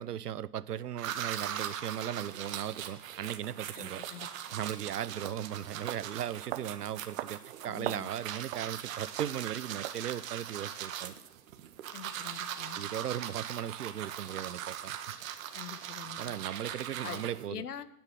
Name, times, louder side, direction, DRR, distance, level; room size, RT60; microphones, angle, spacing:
voice 1, 0.0-4.0 4.5-11.1 12.8-15.0 16.2-17.6, right 10 dB, 85° right, 0.8 m, -37 dB
sound 1, 1.0-17.5, right 10 dB, 60° right, 1.9 m, -40 dB
sound 2, 2.9-3.0 4.0-4.1 4.6-4.8 5.2-5.4 5.9-6.0 6.5-6.7 7.2-7.4 7.6-8.1 8.5-8.7 9.2-9.4 9.8-10.0, right 15 dB, 40° right, 0.7 m, -39 dB
voice 2, 3.7-4.3 7.7-8.1 11.9-12.8 15.5-16.4 17.0-17.2 17.5-17.9, left 8 dB, 80° left, 1.5 m, -44 dB
16.5 x 10.5 x 7.7 m
hypercardioid pair, 130°, 46 cm